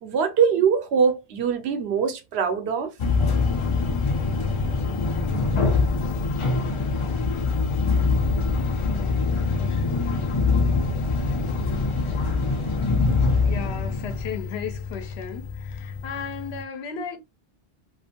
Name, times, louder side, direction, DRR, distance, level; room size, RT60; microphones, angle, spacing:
voice 1, 0.0-2.9, right 6 dB, 80° right, 0.9 m, -22 dB
sound 1, 3.0-16.6, left 4 dB, 50° left, 0.4 m, -24 dB
voice 2, 13.4-17.2, left 6 dB, 80° left, 0.9 m, -35 dB
2.5 x 2.4 x 2.7 m
omnidirectional pair, 1.1 m